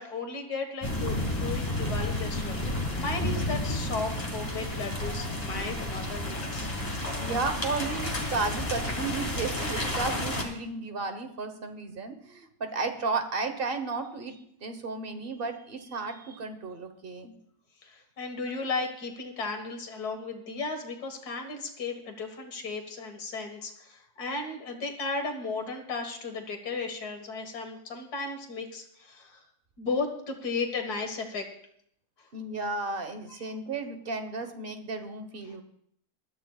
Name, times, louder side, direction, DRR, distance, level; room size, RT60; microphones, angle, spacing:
voice 1, 0.0-6.7 17.8-29.4 29.8-31.5 33.3-33.4 35.4-35.6, left 4 dB, 75° left, 4 dB, 2.2 m, -35 dB
sound 1, 0.8-10.4, left 1 dB, 25° left, 2.0 m, -31 dB
voice 2, 7.2-17.3 32.3-35.6, right 3 dB, 40° right, 7 dB, 1.3 m, -33 dB
21.0 x 13.0 x 2.4 m, 0.68 s
omnidirectional pair, 1.7 m